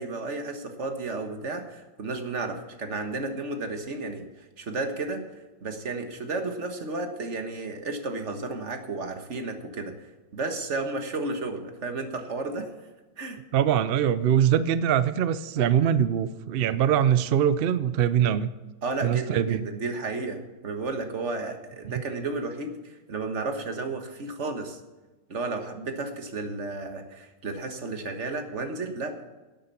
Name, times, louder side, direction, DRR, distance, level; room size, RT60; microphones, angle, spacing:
voice 1, 0.0-4.3 4.6-5.3 5.6-12.7 13.2-13.4 18.8-24.8 25.3-29.1, right 3 dB, 50° right, 5 dB, 1.7 m, -33 dB
voice 2, 13.5-18.5 19.0-19.6, right 9 dB, 70° right, 14 dB, 0.5 m, -23 dB
11.5 x 8.9 x 6.9 m, 1.1 s
omnidirectional pair, 1.6 m